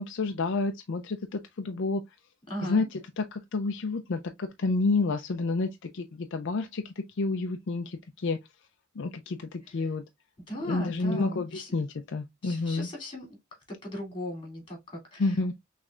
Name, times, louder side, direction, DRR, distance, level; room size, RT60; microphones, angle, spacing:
voice 1, 0.0-2.0 2.6-8.4 9.0-10.0 10.7-12.9 15.2-15.5, left 3 dB, 60° left, 0.5 m, -29 dB
voice 2, 2.5-2.8 9.7-9.9 10.5-11.7 12.4-13.4 13.7-15.4, left 1 dB, 25° left, 2.8 m, -38 dB
6.1 x 3.2 x 2.4 m
head